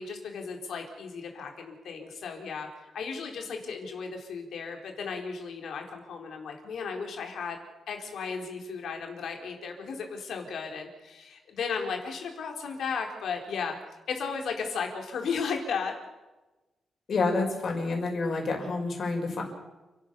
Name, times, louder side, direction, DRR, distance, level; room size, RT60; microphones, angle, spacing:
voice 1, 0.0-13.8 14.1-16.0, left 5 dB, 75° left, 2 dB, 4.2 m, -35 dB
voice 2, 17.1-19.4, left 3 dB, 55° left, 2 dB, 5.8 m, -28 dB
30.0 x 12.5 x 7.0 m, 1.1 s
cardioid pair, 125°, 0 cm